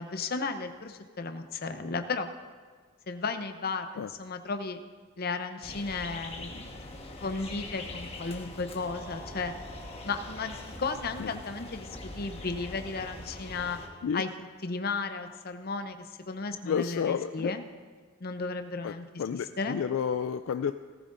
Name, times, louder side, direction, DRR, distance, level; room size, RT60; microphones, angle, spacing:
voice 1, 0.0-2.3 3.1-4.8 5.2-6.7 7.2-9.5 10.0-13.8 14.1-14.3 14.6-17.6 18.2-19.2 19.6-19.8, left 4 dB, 50° left, 7 dB, 0.7 m, -34 dB
sound 1, 5.6-13.9, left 2 dB, 30° left, 1.3 m, -43 dB
sound 2, 8.8-13.1, right 1 dB, 50° right, 4.1 m, -52 dB
voice 2, 16.6-17.5 18.8-20.7, left 7 dB, 70° left, 10 dB, 0.3 m, -31 dB
18.5 x 14.5 x 2.6 m, 1.5 s
head